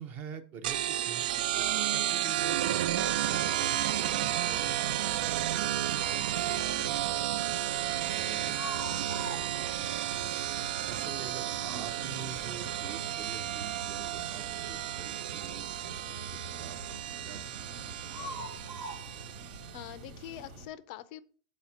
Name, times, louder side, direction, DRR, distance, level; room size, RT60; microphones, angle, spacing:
voice 1, 0.0-6.4 8.8-9.9 10.9-17.0 17.2-18.5, right 6 dB, 30° right, 11 dB, 0.7 m, -47 dB
sound 1, 0.6-19.8, right 13 dB, 70° right, 0.4 m, -32 dB
sound 2, 3.2-20.7, right 1 dB, 90° right, 1.9 m, -45 dB
voice 2, 8.2-8.7 19.7-21.2, left 13 dB, 40° left, 16 dB, 0.4 m, -45 dB
7.4 x 4.3 x 5.6 m, 0.42 s
supercardioid pair, 175°, 5 cm